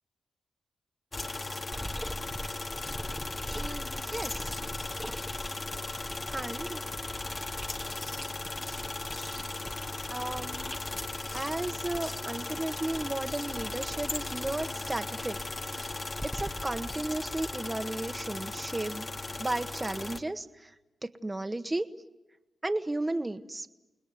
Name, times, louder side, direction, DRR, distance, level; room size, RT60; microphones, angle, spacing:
sound 1, 1.1-20.2, left 2 dB, 35° left, 1.9 m, -37 dB
sound 2, 1.7-17.0, equal, ahead, 1.6 m, -44 dB
voice 1, 3.5-4.5 6.3-6.8 10.1-10.8 11.3-15.4 16.2-19.1 19.4-20.7 21.0-21.9 22.6-23.7, right 2 dB, 25° right, 9 dB, 1.7 m, -34 dB
29.0 x 20.0 x 9.3 m, 1.1 s
supercardioid pair, 40°, 0 cm